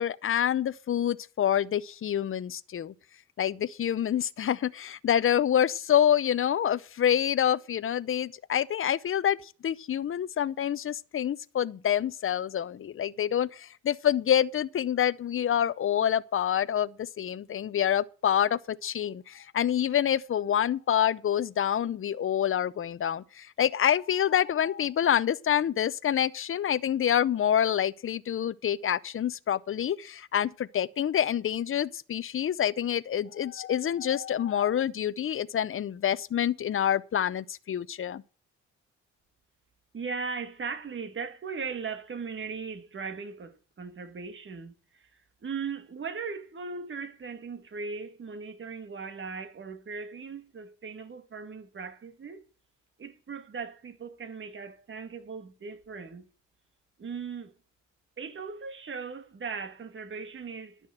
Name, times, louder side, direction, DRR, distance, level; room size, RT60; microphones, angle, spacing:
voice 1, 0.0-2.9 3.4-38.2, left 10 dB, 45° left, 0.7 m, -27 dB
voice 2, 39.9-45.1 45.4-52.4 53.0-56.3 57.0-57.5 58.2-60.8, right 5 dB, 40° right, 2.1 m, -38 dB
11.5 x 6.4 x 7.8 m
cardioid pair, 90°, 30 cm